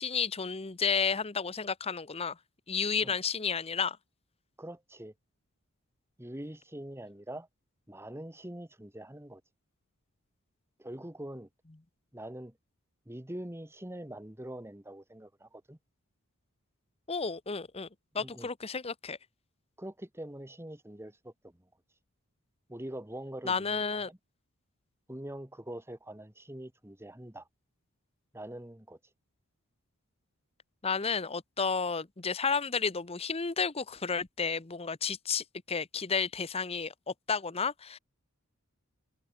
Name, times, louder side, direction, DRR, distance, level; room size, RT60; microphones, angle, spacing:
voice 1, 0.0-2.4 2.7-4.0 17.1-17.9 18.1-19.2 23.4-24.1 30.8-38.0, left 5 dB, 25° left, 0.9 m, -32 dB
voice 2, 4.6-5.1 6.2-7.5 7.9-9.4 10.8-11.5 12.1-12.5 13.1-15.8 18.2-18.5 19.8-21.5 22.7-24.2 25.1-27.5 28.3-29.0, right 1 dB, 10° right, 1.8 m, -43 dB
head